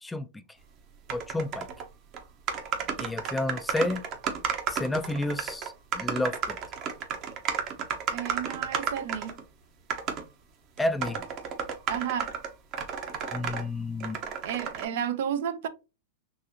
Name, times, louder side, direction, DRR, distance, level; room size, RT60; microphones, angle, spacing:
voice 1, 1.1-1.7 3.0-4.0 4.7-6.6 10.8-11.2 13.3-14.2, left 2 dB, 10° left, 0.3 m, -30 dB
sound 1, 1.1-1.9 2.1-2.2 2.5-9.4 9.9-10.2 10.8-13.6 14.0-14.8, right 7 dB, 40° right, 0.8 m, -32 dB
voice 2, 8.1-9.4 11.9-12.3 14.4-15.7, right 9 dB, 65° right, 0.6 m, -32 dB
4.0 x 2.6 x 2.6 m
hypercardioid pair, 125°, 0 cm